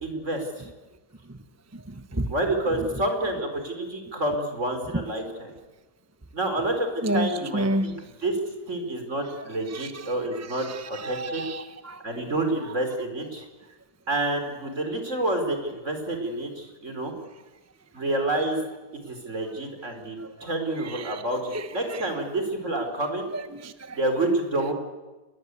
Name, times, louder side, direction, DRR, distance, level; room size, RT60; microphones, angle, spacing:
voice 1, 0.0-0.7 2.3-5.5 6.3-7.9 8.2-8.4 8.7-10.7 11.0-11.4 12.0-13.5 14.1-17.1 17.9-18.6 19.1-23.3 23.9-24.7, right 1 dB, 50° right, 4.6 m, -28 dB
voice 2, 7.5-7.9 9.8-9.9 11.0-12.0 20.2-20.3 20.9-21.2 21.5-21.7 23.3-24.0, right 1 dB, 15° right, 0.9 m, -29 dB
29.0 x 21.5 x 8.3 m
omnidirectional pair, 1.6 m